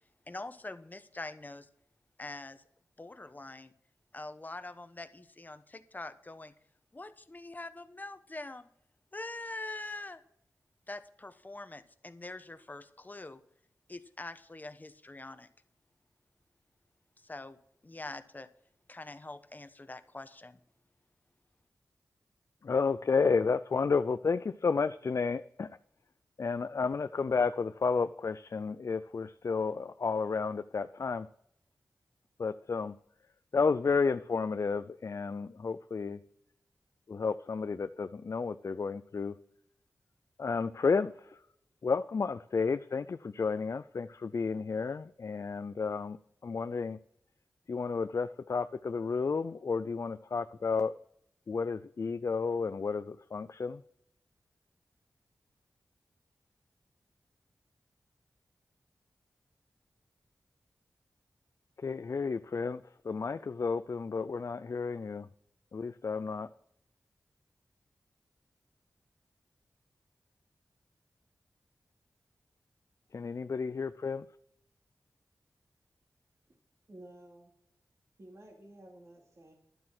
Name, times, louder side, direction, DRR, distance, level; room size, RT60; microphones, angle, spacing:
voice 1, 0.3-1.7 2.2-2.6 3.0-3.7 4.1-6.5 6.9-8.7 9.1-10.2 10.9-13.4 13.9-15.5 17.2-17.6 17.8-18.5 18.9-20.6, left 2 dB, 30° left, 11 dB, 1.0 m, -44 dB
voice 2, 22.6-25.8 26.4-31.3 32.4-33.0 33.5-36.2 37.1-39.3 40.4-41.4 41.8-46.2 46.4-47.0 47.7-50.9 51.5-53.8 61.8-65.3 65.7-66.5 73.1-74.3, left 5 dB, 55° left, 11 dB, 0.4 m, -32 dB
voice 3, 76.9-77.5 78.2-79.5, right 1 dB, 55° right, -1 dB, 3.0 m, -52 dB
11.5 x 7.7 x 6.0 m, 0.71 s
wide cardioid pair, 65°, 6 cm